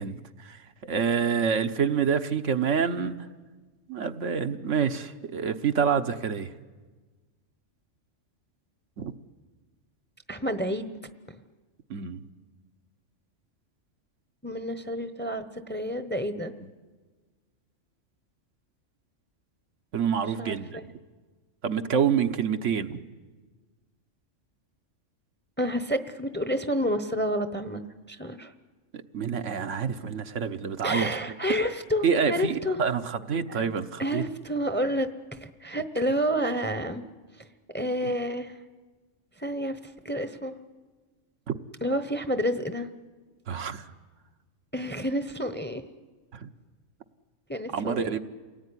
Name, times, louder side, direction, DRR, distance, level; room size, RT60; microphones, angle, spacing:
voice 1, 0.0-3.1 3.9-6.5 9.0-9.1 11.9-12.2 16.6-16.7 19.9-20.9 21.6-23.0 28.9-31.1 32.0-34.2 38.0-38.1 41.5-41.6 43.5-43.9 46.3-46.5 47.7-48.2, right 7 dB, 75° right, 7 dB, 1.3 m, -27 dB
voice 2, 10.3-10.9 14.4-16.5 20.4-20.8 25.6-27.8 28.1-28.5 30.8-32.8 33.5-33.6 34.0-37.0 37.7-38.6 39.4-40.5 41.8-42.9 44.7-45.8 47.5-48.2, equal, 10° left, 10 dB, 0.8 m, -29 dB
28.0 x 18.5 x 9.9 m, 1.4 s
omnidirectional pair, 1.3 m